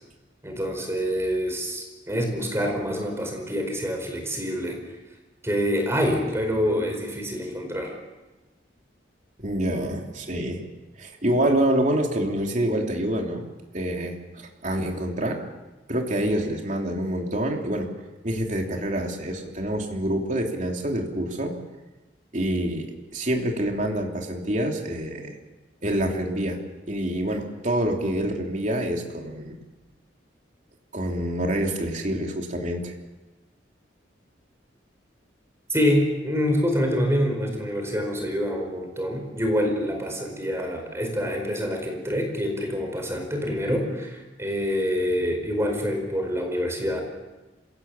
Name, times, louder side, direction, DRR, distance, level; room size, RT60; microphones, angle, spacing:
voice 1, 0.4-4.8 5.4-7.9 35.7-47.0, equal, 15° right, 3 dB, 4.7 m, -26 dB
voice 2, 9.4-10.6 11.0-13.5 13.7-15.4 15.9-17.9 18.2-21.5 22.3-25.4 25.8-26.6 26.9-29.6 30.9-32.9, right 1 dB, 40° right, 1 dB, 3.1 m, -26 dB
27.0 x 17.0 x 7.3 m, 1.1 s
head